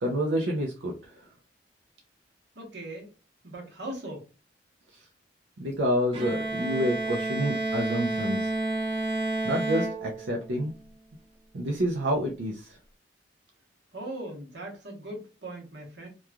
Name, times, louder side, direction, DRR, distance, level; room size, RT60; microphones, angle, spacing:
voice 1, 0.0-0.9 4.9-5.0 5.6-8.5 9.4-10.7 11.5-12.8, equal, 85° right, -1 dB, 0.6 m, -28 dB
voice 2, 2.5-3.1 3.4-4.2 13.9-16.1, right 1 dB, 70° right, 0 dB, 1.1 m, -39 dB
Bowed string instrument, 6.1-10.6, right 2 dB, 30° right, 0.7 m, -30 dB
3.0 x 2.3 x 2.3 m, 0.31 s
head